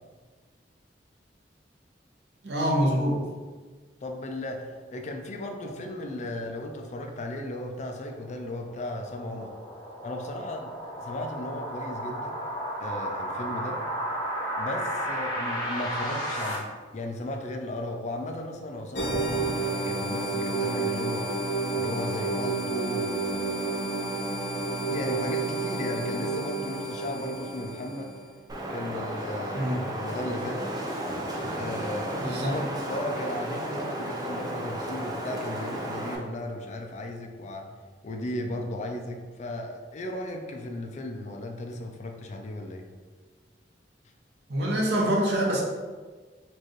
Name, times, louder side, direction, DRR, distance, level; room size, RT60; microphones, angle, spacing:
voice 1, 2.4-3.2 29.5-29.8 32.1-32.5 44.5-45.6, equal, 70° right, -1 dB, 0.8 m, -25 dB
voice 2, 4.0-9.5 10.0-12.4 12.8-13.8 14.6-16.7 16.9-21.3 21.7-23.9 24.9-28.1 28.7-30.6 31.6-37.7 38.0-42.8, left 1 dB, 40° left, 3 dB, 0.4 m, -36 dB
sound 1, 7.9-16.5, equal, 25° left, 1.0 m, -33 dB
sound 2, 19.0-28.3, right 3 dB, 80° left, 0.9 m, -30 dB
Wind, 28.5-36.2, right 1 dB, 20° right, 0.5 m, -33 dB
4.4 x 2.5 x 3.1 m, 1.4 s
head